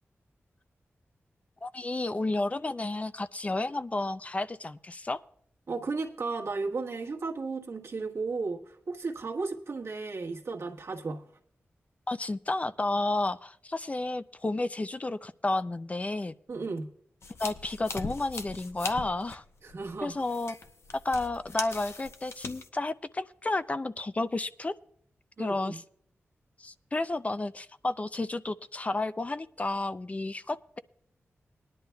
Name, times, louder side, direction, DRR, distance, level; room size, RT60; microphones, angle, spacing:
voice 1, 1.6-5.2 12.1-16.3 17.4-19.4 20.0-20.6 20.9-24.7 25.4-25.8 26.6-30.8, left 2 dB, 30° left, 14 dB, 0.4 m, -31 dB
voice 2, 5.7-11.3 16.5-16.9 19.6-20.2 25.4-25.8, right 4 dB, 70° right, 0 dB, 1.4 m, -34 dB
sound 1, 17.2-22.7, left 4 dB, 65° left, 0.8 m, -41 dB
20.5 x 10.5 x 2.2 m, 0.67 s
wide cardioid pair, 70°, 5 cm